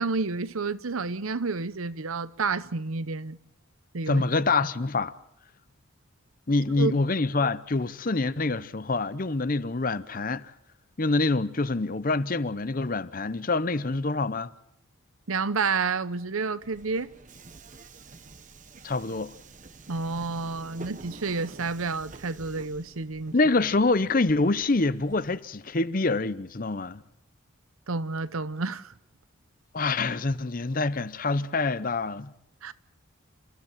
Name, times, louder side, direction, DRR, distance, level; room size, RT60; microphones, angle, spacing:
voice 1, 0.0-3.4 3.9-4.2 6.8-6.9 15.3-17.1 19.9-23.3 27.9-28.9 32.6-32.7, right 4 dB, 85° right, 0.9 m, -30 dB
voice 2, 4.1-5.1 6.5-10.5 11.0-14.5 18.8-19.3 23.3-27.0 29.7-32.3, left 3 dB, 40° left, 0.7 m, -26 dB
Subway metro underground, 16.6-25.4, right 3 dB, 35° right, 1.0 m, -48 dB
29.0 x 15.0 x 7.3 m
head